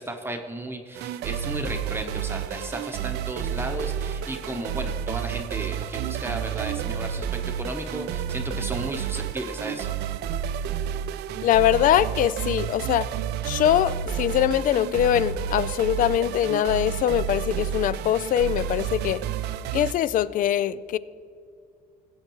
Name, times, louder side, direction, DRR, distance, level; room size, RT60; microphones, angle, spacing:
voice 1, 0.0-10.0, right 1 dB, 15° right, 4 dB, 0.9 m, -34 dB
sound 1, 0.9-19.9, right 9 dB, 75° right, 0.4 m, -30 dB
voice 2, 11.4-13.1 13.4-19.2 19.7-21.0, left 11 dB, 55° left, 18 dB, 0.4 m, -22 dB
17.5 x 8.0 x 3.0 m, 2.4 s
cardioid pair, 110°, 17 cm